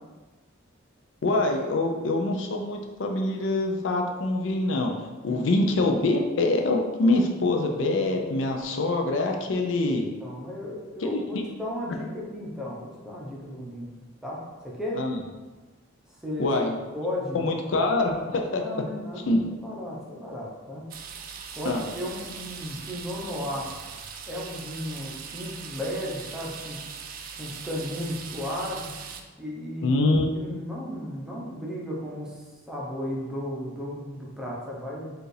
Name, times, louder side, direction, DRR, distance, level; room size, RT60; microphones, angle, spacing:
voice 1, 1.2-4.9 5.2-10.1 11.0-11.4 14.9-15.2 16.4-16.8 17.3-18.6 19.3-19.4 21.7-21.8 29.8-30.3, left 2 dB, 65° left, 2 dB, 0.5 m, -24 dB
voice 2, 10.2-13.9 14.2-15.0 16.2-16.5 16.9-17.5 18.6-20.9 21.5-23.7 24.3-27.0 27.4-28.9 29.4-30.0 30.3-35.1, left 1 dB, 5° right, -5 dB, 0.7 m, -34 dB
sound 1, 20.9-29.2, right 6 dB, 45° right, 0.3 m, -40 dB
4.8 x 2.5 x 3.2 m, 1.2 s
head